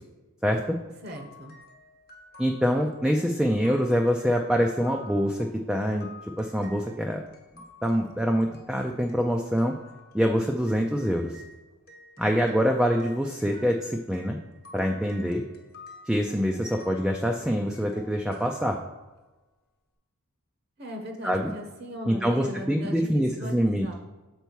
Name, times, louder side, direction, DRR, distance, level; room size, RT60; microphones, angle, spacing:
voice 1, 0.4-0.8 2.4-6.1 6.4-7.2 7.8-9.7 10.1-11.4 12.2-14.4 14.7-15.4 16.1-18.8 21.2-21.5 22.1-23.9, equal, ahead, 1 dB, 0.3 m, -25 dB
voice 2, 1.0-1.6 20.8-23.9, equal, 45° right, 3 dB, 0.9 m, -38 dB
sound 1, 1.1-11.5 11.9-19.2, left 2 dB, 45° left, 0.9 m, -51 dB
6.8 x 4.5 x 4.6 m, 1.2 s
head